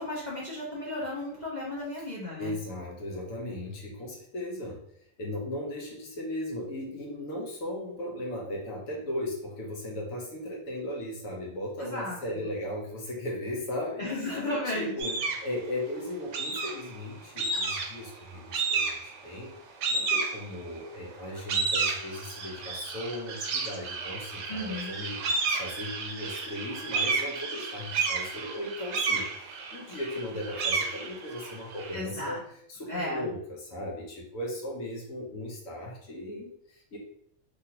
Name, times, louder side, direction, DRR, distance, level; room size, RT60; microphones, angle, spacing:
voice 1, 0.0-2.5 11.8-12.2 14.0-15.2 24.5-24.9 31.9-32.4 32.9-33.3, left 1 dB, 45° left, -5 dB, 0.6 m, -34 dB
voice 2, 2.4-4.8 5.2-19.5 19.9-32.4 32.7-37.0, left 1 dB, 75° left, -2 dB, 1.1 m, -37 dB
sound 1, 15.0-15.5 16.3-17.0 17.4-18.1 18.5-19.2 19.8-20.8 21.2-31.9, right 4 dB, 65° right, 0.8 m, -31 dB
2.9 x 2.5 x 2.8 m, 0.69 s
omnidirectional pair, 1.4 m